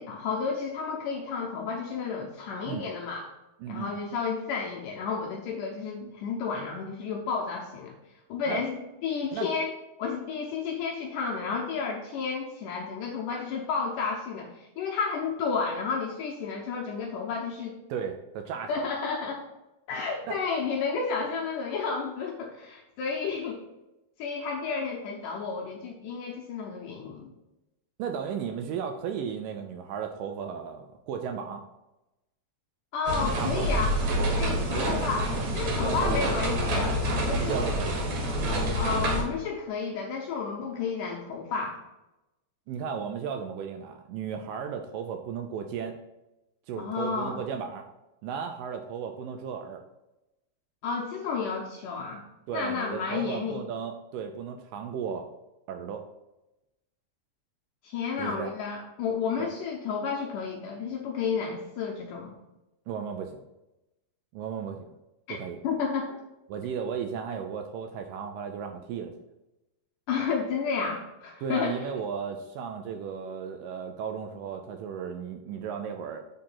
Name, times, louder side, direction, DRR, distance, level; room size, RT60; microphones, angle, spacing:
voice 1, 0.0-3.3 3.7-7.9 8.3-9.7 10.0-17.8 18.7-19.4 19.9-23.6 24.2-27.3 32.9-33.9 34.4-35.3 35.5-37.0 37.3-37.6 38.7-41.8 46.8-47.4 50.8-52.2 52.5-53.6 57.8-62.3 65.3-65.4 65.6-66.2 70.1-71.8, left 5 dB, 80° left, 0 dB, 1.9 m, -31 dB
voice 2, 3.6-3.9 8.5-8.6 9.3-9.5 17.9-18.9 20.3-20.4 28.0-31.6 33.4-33.8 34.7-34.9 35.6-36.3 37.3-38.0 42.7-46.0 46.7-47.9 48.2-49.8 52.5-55.3 55.7-56.0 58.2-58.5 59.4-59.5 62.9-63.4 64.3-64.9 65.3-65.6 66.5-69.1 71.4-76.2, right 7 dB, 90° right, 5 dB, 1.9 m, -35 dB
sound 1, 33.1-39.2, equal, 60° right, 2.1 m, -27 dB
6.8 x 3.7 x 5.6 m, 0.96 s
omnidirectional pair, 4.5 m